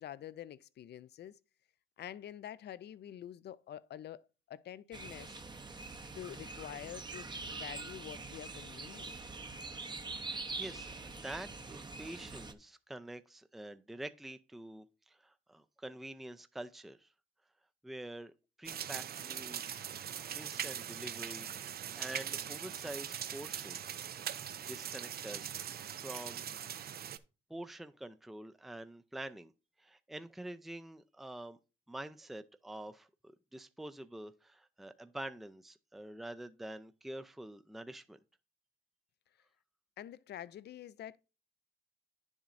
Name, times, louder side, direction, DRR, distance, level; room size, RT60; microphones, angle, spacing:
voice 1, 0.0-1.4 2.0-4.2 4.5-5.4 6.1-9.2 40.0-41.2, left 11 dB, 55° left, 0.5 m, -47 dB
sound 1, 4.9-12.5, right 3 dB, 20° right, 0.8 m, -44 dB
voice 2, 10.2-17.1 17.8-18.3 18.6-19.8 20.3-24.0 24.7-26.4 27.5-29.5 29.8-31.6 31.9-38.2, right 1 dB, ahead, 0.5 m, -47 dB
sound 2, 18.6-27.2, right 9 dB, 50° right, 0.6 m, -41 dB
10.0 x 7.2 x 2.6 m
cardioid pair, 90°, 20 cm